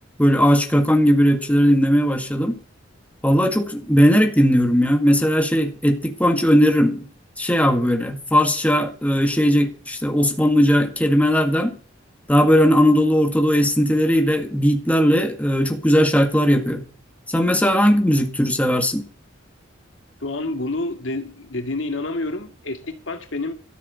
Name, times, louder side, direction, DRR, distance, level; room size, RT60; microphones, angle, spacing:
voice 1, 0.2-2.6 3.2-7.1 7.4-11.8 12.3-16.9 17.3-19.1, equal, 10° left, 1.9 m, -18 dB
voice 2, 20.2-23.5, left 2 dB, 85° left, 2.1 m, -28 dB
13.5 x 7.3 x 6.9 m
head